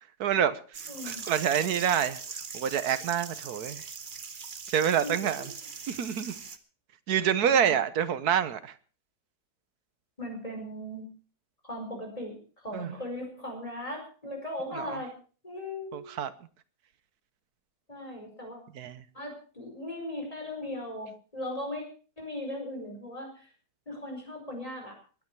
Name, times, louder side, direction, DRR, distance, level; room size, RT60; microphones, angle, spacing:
voice 1, 0.2-2.2 2.5-3.8 4.7-5.5 5.9-6.3 7.1-8.7 12.7-12.9 14.7-15.0 15.9-16.3 18.7-19.0, right 9 dB, 75° right, 1.5 m, -27 dB
sound 1, 0.7-6.6, right 5 dB, 35° right, 1.0 m, -41 dB
voice 2, 0.9-1.2 5.0-5.1 5.4-5.5 7.5-7.7 10.2-11.1 11.6-12.4 12.6-15.1 15.4-16.2 17.9-18.6 19.1-21.8 22.2-23.3 23.9-25.0, left 1 dB, 20° left, 5.1 m, -38 dB
21.5 x 9.8 x 4.7 m
omnidirectional pair, 1.7 m